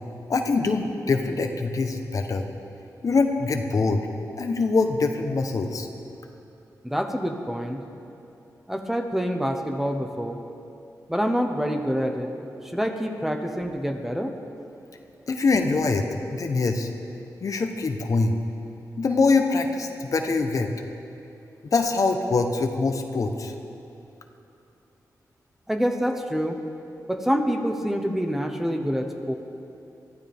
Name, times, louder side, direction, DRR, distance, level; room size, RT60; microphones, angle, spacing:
voice 1, 0.3-2.5 3.0-4.1 4.4-5.9 15.3-16.9 17.4-18.4 19.0-20.7 21.7-23.5, left 3 dB, 55° left, 5 dB, 1.1 m, -24 dB
voice 2, 6.8-7.8 8.7-10.4 11.1-12.3 12.7-14.4 25.7-26.6 27.1-29.3, equal, 5° right, 4 dB, 1.1 m, -26 dB
23.0 x 14.5 x 3.6 m, 2.8 s
wide cardioid pair, 110°, 7 cm